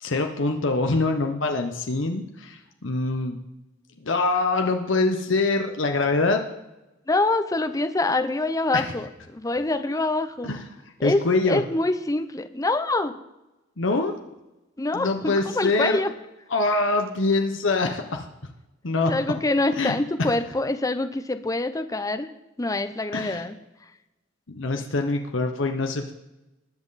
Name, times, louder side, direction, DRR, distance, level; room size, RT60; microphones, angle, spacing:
voice 1, 0.0-3.4 4.0-6.4 8.7-8.8 10.4-10.6 11.0-11.6 13.8-14.1 14.9-16.0 16.5-18.3 18.8-19.1 19.7-20.0 23.1-23.4 24.5-26.1, left 3 dB, 85° left, 4 dB, 1.0 m, -24 dB
voice 2, 7.1-10.5 11.0-13.2 14.8-16.1 19.1-22.3 22.6-23.5, left 2 dB, 20° left, 10 dB, 0.6 m, -25 dB
20.5 x 7.6 x 4.1 m, 0.98 s
head